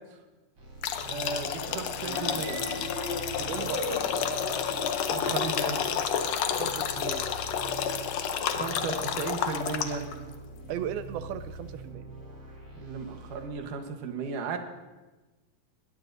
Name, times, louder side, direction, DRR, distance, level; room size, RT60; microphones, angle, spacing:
sound 1, 0.6-13.5, right 2 dB, 45° right, 6.4 m, -44 dB
sound 2, 0.8-10.1, left 8 dB, 80° left, 1.5 m, -30 dB
voice 1, 1.1-2.6 5.1-5.8 8.5-10.1 12.8-14.6, right 4 dB, 65° right, 5 dB, 2.7 m, -35 dB
sound 3, 2.0-6.6, left 1 dB, 10° right, 3.3 m, -38 dB
voice 2, 3.4-4.0 6.6-7.3 10.7-12.1, right 9 dB, 85° right, 11 dB, 2.6 m, -36 dB
21.0 x 20.5 x 2.7 m, 1.2 s
omnidirectional pair, 4.2 m